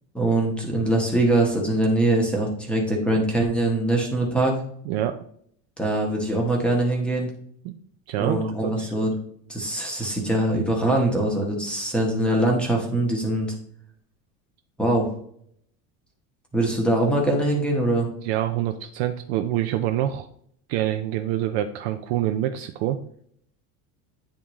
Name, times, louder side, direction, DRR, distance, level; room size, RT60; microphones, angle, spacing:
voice 1, 0.1-4.6 5.8-7.3 8.2-9.1 9.5-13.5 14.8-15.1 16.5-18.1, right 1 dB, 5° left, 0 dB, 0.9 m, -23 dB
voice 2, 8.1-8.9 18.2-20.3 20.7-23.0, right 12 dB, 50° right, 7 dB, 0.4 m, -26 dB
9.8 x 3.6 x 3.0 m, 0.64 s
cardioid pair, 175°, 42 cm